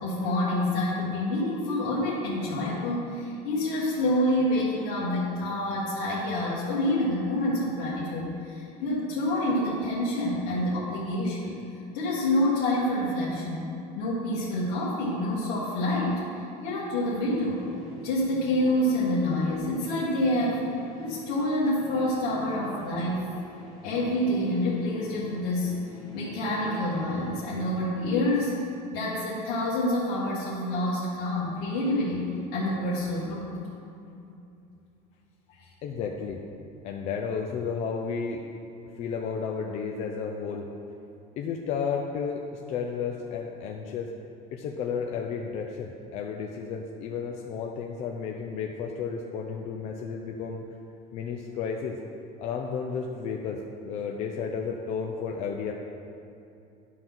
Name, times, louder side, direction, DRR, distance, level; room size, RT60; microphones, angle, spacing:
voice 1, 0.0-11.5 11.9-13.7 14.0-16.2 16.6-17.6 18.0-20.7 21.0-23.3 23.8-25.8 26.1-28.6 28.9-33.5 35.5-35.6, left 1 dB, 65° left, -8 dB, 1.6 m, -27 dB
sound 1, 16.5-28.4, right 1 dB, 20° left, 2.2 m, -45 dB
voice 2, 35.8-36.4 36.8-38.4 39.0-40.7 41.4-42.4 42.7-44.1 44.5-50.6 51.1-52.0 52.4-55.7, left 6 dB, 40° left, 1 dB, 0.5 m, -32 dB
11.0 x 3.9 x 6.0 m, 2.7 s
cardioid pair, 175°, 17 cm